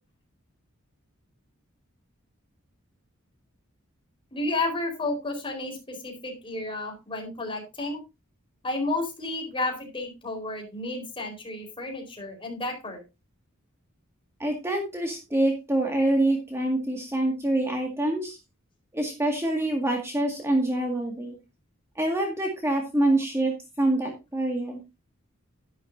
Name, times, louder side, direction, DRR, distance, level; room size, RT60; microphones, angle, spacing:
voice 1, 4.3-8.0 8.6-13.0, left 2 dB, 25° left, 3 dB, 4.3 m, -32 dB
voice 2, 14.4-18.4 18.9-21.4 22.0-24.8, right 1 dB, 10° right, 2 dB, 2.0 m, -26 dB
11.5 x 11.0 x 2.7 m, 0.25 s
head